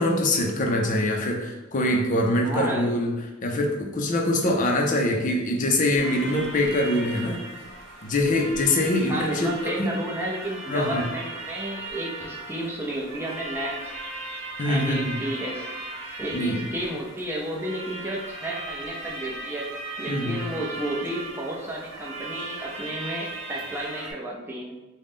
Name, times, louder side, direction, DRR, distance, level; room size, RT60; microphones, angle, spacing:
voice 1, 0.0-3.2 3.4-7.4 8.0-10.0 10.7-11.0 14.6-15.2 16.3-16.6 20.1-20.4, left 1 dB, 40° left, 2 dB, 0.5 m, -24 dB
voice 2, 2.4-2.9 9.0-13.8 14.7-15.7 16.2-19.7 20.0-24.7, right 1 dB, 10° right, -3 dB, 0.6 m, -32 dB
sound 1, 5.9-24.1, right 2 dB, 65° right, 0.9 m, -37 dB
3.8 x 2.1 x 3.5 m, 1.1 s
head